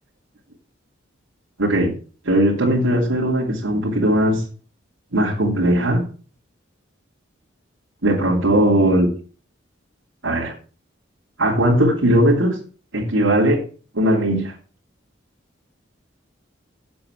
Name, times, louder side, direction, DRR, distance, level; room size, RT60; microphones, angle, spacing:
voice 1, 1.6-2.0 2.2-4.4 5.1-6.0 8.0-9.1 10.2-10.5 11.4-12.6 12.9-13.6 13.9-14.5, right 1 dB, 90° right, -5 dB, 2.9 m, -18 dB
7.9 x 7.8 x 6.2 m, 0.38 s
head